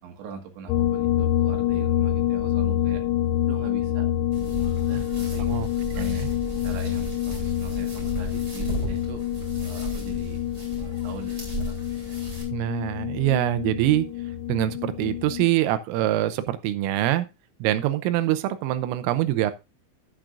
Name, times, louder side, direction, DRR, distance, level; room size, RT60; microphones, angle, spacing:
voice 1, 0.0-3.0 3.4-4.1 4.6-6.2 6.6-9.2 9.6-10.4 10.8-11.8, right 6 dB, 70° right, 3 dB, 3.8 m, -41 dB
sound 1, 0.7-15.5, left 12 dB, 90° left, 3.4 m, -27 dB
sound 2, 4.3-12.4, right 1 dB, 25° right, 3.2 m, -35 dB
voice 2, 6.0-6.3 12.5-14.1 14.5-17.3 17.6-19.5, right 13 dB, 85° right, 12 dB, 3.4 m, -24 dB
11.0 x 10.0 x 2.5 m, 0.26 s
omnidirectional pair, 5.9 m